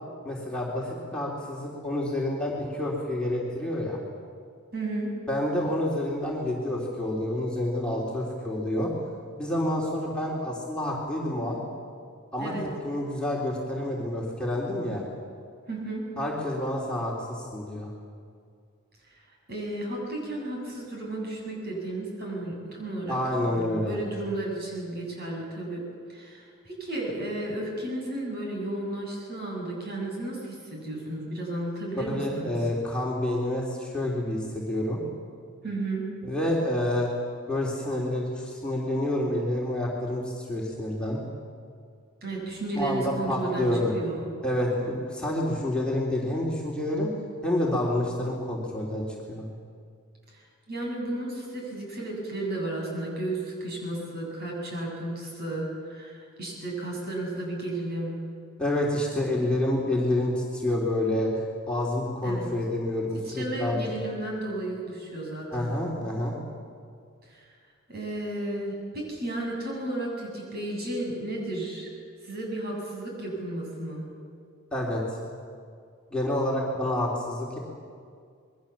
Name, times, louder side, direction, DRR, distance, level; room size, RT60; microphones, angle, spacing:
voice 1, 0.2-4.0 5.3-8.9 9.4-11.6 12.3-12.5 12.8-15.0 16.2-17.9 23.1-24.0 31.9-35.0 36.2-37.1 37.5-41.2 42.7-43.9 44.4-47.1 47.4-49.5 58.6-63.8 65.5-66.3 74.7-75.2 76.1-77.6, left 1 dB, 5° left, -4 dB, 3.3 m, -28 dB
voice 2, 4.7-5.1 12.4-12.6 15.7-16.0 19.5-23.2 23.5-25.8 26.1-32.5 35.6-36.0 42.2-44.2 50.3-58.2 62.2-62.5 63.2-65.7 67.3-67.5 67.9-71.9 72.2-74.1, right 1 dB, 50° right, -1 dB, 7.6 m, -33 dB
27.0 x 21.5 x 7.3 m, 2.2 s
head